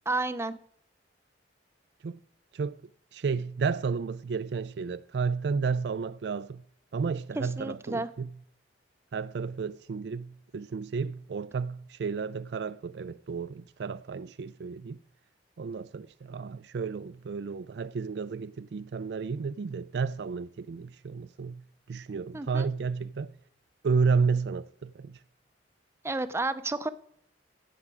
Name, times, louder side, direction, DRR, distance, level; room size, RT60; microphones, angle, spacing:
voice 1, 0.1-0.6 7.4-8.1 22.3-22.7 26.0-26.9, right 2 dB, 15° right, 0.5 m, -31 dB
voice 2, 3.1-6.6 6.9-8.3 9.1-15.0 15.6-21.6 21.9-23.3 23.8-25.2, right 5 dB, 65° right, 0.4 m, -32 dB
15.0 x 8.7 x 4.8 m
head